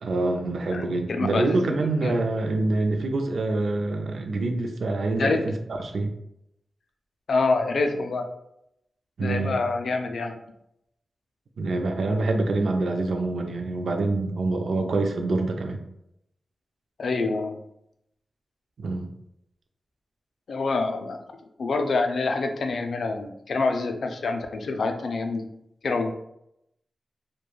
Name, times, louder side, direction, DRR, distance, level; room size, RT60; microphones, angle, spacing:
voice 1, 0.0-5.6 5.8-6.1 9.2-9.5 11.6-15.8 18.8-19.1, right 2 dB, 75° right, 4 dB, 0.3 m, -26 dB
voice 2, 1.2-2.2 5.2-5.5 7.3-8.3 9.2-10.4 17.0-17.6 20.5-21.2 21.6-25.6 25.8-26.1, left 3 dB, 70° left, 5 dB, 0.3 m, -26 dB
3.0 x 2.1 x 2.3 m, 0.79 s
wide cardioid pair, 130°, 0 cm